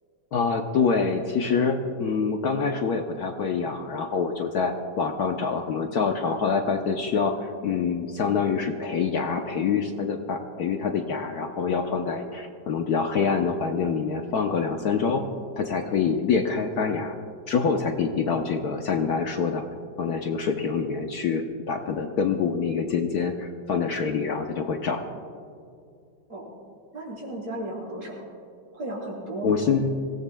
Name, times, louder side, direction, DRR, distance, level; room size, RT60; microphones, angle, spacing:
voice 1, 0.3-15.3 15.6-17.2 17.5-19.6 20.0-25.0 29.4-30.1, left 5 dB, 65° left, 4 dB, 1.2 m, -26 dB
voice 2, 26.9-28.2 28.7-29.6, right 1 dB, 50° right, -5 dB, 5.0 m, -34 dB
25.5 x 17.0 x 2.2 m, 2.5 s
omnidirectional pair, 2.0 m